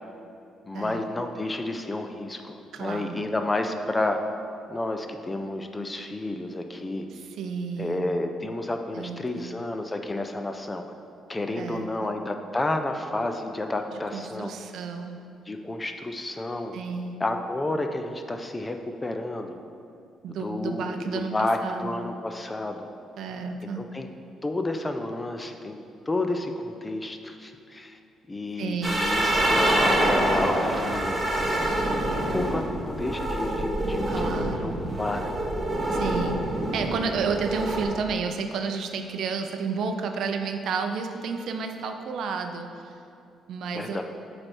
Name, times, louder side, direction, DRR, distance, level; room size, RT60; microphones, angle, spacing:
voice 1, 0.6-4.2 4.7-7.1 7.8-10.8 11.3-14.5 15.5-16.7 17.2-19.6 20.3-22.9 23.8-24.1 24.4-25.8 26.1-28.0 28.3-31.2 31.8-32.0 32.3-35.3 43.7-44.0, left 2 dB, 15° left, 5 dB, 0.4 m, -31 dB
voice 2, 2.7-3.3 7.1-8.2 8.9-9.6 11.6-12.1 14.1-15.2 16.7-17.2 20.2-21.9 23.2-23.8 28.6-29.0 34.1-34.8 35.9-36.4 36.7-42.9 43.5-44.0, right 5 dB, 70° right, 6 dB, 0.5 m, -31 dB
sound 1, 28.8-37.8, right 1 dB, 10° right, 1.0 m, -26 dB
8.2 x 3.3 x 4.5 m, 2.6 s
cardioid pair, 125°, 0 cm